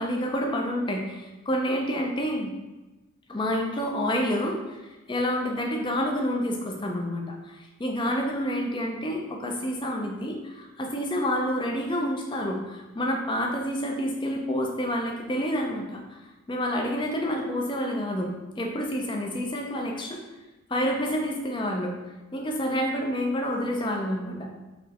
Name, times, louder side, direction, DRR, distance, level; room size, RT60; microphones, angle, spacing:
voice 1, 0.0-2.5 3.3-4.8 5.1-16.2 16.5-20.2 20.7-21.9 22.3-24.5, equal, 20° left, 1 dB, 0.5 m, -28 dB
4.1 x 3.2 x 2.9 m, 1.1 s
head